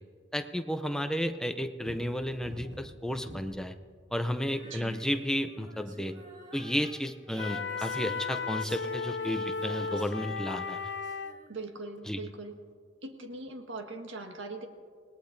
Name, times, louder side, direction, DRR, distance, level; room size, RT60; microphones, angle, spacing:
voice 1, 0.3-3.7 4.1-6.1 6.5-10.8 12.1-12.2, equal, 5° left, 8 dB, 0.5 m, -32 dB
sound 1, 1.8-3.8 4.5-4.9, equal, 65° right, 1.8 m, -46 dB
Female singing, 4.5-11.8, right 1 dB, 45° right, 2.0 m, -51 dB
sound 2, 7.4-11.4, left 5 dB, 60° left, 0.5 m, -35 dB
voice 2, 11.5-12.6 13.0-14.7, right 3 dB, 80° right, 4 dB, 1.6 m, -41 dB
27.0 x 19.0 x 2.7 m, 2.1 s
head